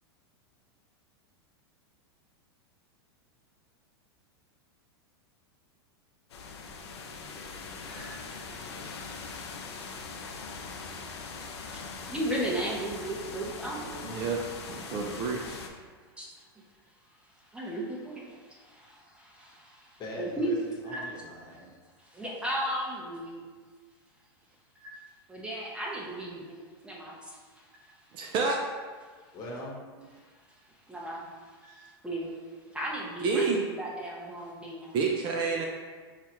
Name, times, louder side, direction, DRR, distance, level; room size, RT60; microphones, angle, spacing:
sound 1, 6.3-15.7, left 4 dB, 85° left, 0.5 m, -41 dB
voice 1, 12.1-14.0 16.2-16.3 17.5-18.3 19.4-19.5 20.1-20.5 20.9-21.1 22.1-23.4 24.8-25.0 25.3-27.1 30.9-31.2 31.6-31.8 32.0-32.3 32.7-34.9, right 1 dB, 5° right, -4 dB, 0.8 m, -35 dB
voice 2, 14.0-15.6 28.1-28.6 33.2-33.6 34.9-35.7, right 4 dB, 35° right, 1 dB, 0.4 m, -29 dB
voice 3, 20.0-20.6 20.8-21.7 29.3-29.8 31.6-31.9, left 1 dB, 30° left, -3 dB, 1.0 m, -41 dB
5.6 x 2.3 x 2.9 m, 1.5 s
hypercardioid pair, 120°, 14 cm